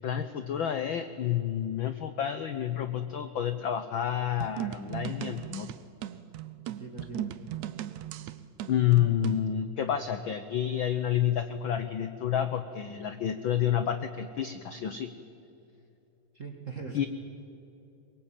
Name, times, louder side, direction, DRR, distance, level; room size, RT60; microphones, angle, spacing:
voice 1, 0.0-5.7 8.7-15.1 16.9-17.1, left 10 dB, 85° left, 10 dB, 1.1 m, -29 dB
sound 1, 4.4-9.5, right 12 dB, 80° right, 2.2 m, -38 dB
voice 2, 6.7-7.3 16.3-17.1, right 4 dB, 30° right, 2 dB, 1.8 m, -41 dB
23.0 x 22.0 x 9.0 m, 2.8 s
omnidirectional pair, 3.4 m